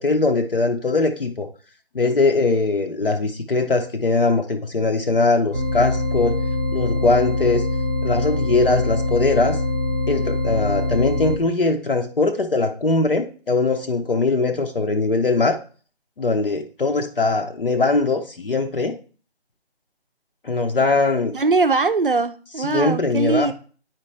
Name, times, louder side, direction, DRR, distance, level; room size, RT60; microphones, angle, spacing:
voice 1, 0.0-1.5 1.9-6.4 6.7-7.6 8.0-9.6 10.1-15.6 16.2-19.0 20.4-21.3 22.6-23.5, left 3 dB, 55° left, 0.7 m, -21 dB
sound 1, 5.5-11.4, left 2 dB, 15° right, 0.8 m, -23 dB
voice 2, 21.3-23.5, right 4 dB, 55° right, 0.6 m, -21 dB
9.1 x 4.4 x 3.2 m
figure-of-eight pair, 175°, 32 cm